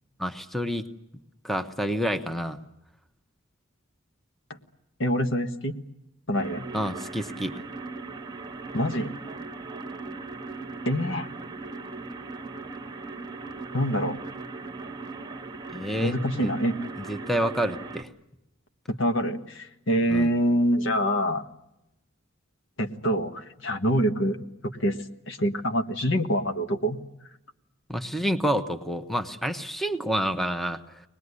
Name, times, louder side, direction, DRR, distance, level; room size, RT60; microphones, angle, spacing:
voice 1, 0.2-0.9 1.4-2.6 6.7-7.5 15.7-16.2 16.4-16.5 17.0-18.1 20.1-20.3 27.9-31.0, equal, ahead, 8 dB, 0.9 m, -28 dB
voice 2, 5.0-5.8 6.3-6.7 8.7-9.1 10.8-11.3 13.7-14.2 16.0-16.7 18.9-21.4 22.8-25.0 25.3-27.0, equal, 70° left, 6 dB, 1.5 m, -25 dB
sound 1, 6.3-18.0, right 3 dB, 20° right, 1.4 m, -38 dB
24.0 x 20.0 x 9.7 m, 0.90 s
head